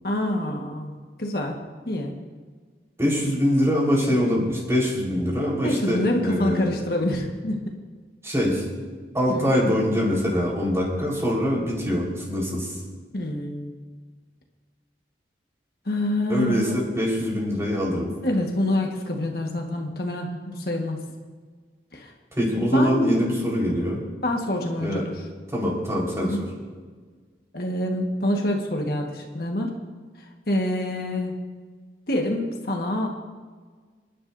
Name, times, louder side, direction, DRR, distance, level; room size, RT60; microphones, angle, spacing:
voice 1, 0.0-0.9 1.2-2.2 5.6-7.6 9.3-9.4 13.1-13.7 15.8-16.7 18.2-21.0 21.9-22.1 22.6-23.1 24.2-25.1 26.2-26.4 27.5-29.7 30.5-31.4 32.1-33.1, left 1 dB, 55° left, 1 dB, 1.4 m, -26 dB
voice 2, 3.0-6.8 8.2-8.6 9.1-12.7 16.3-18.1 22.3-24.0 24.8-25.0 25.5-26.5, equal, 15° right, -4 dB, 4.1 m, -24 dB
27.0 x 11.0 x 2.7 m, 1.5 s
head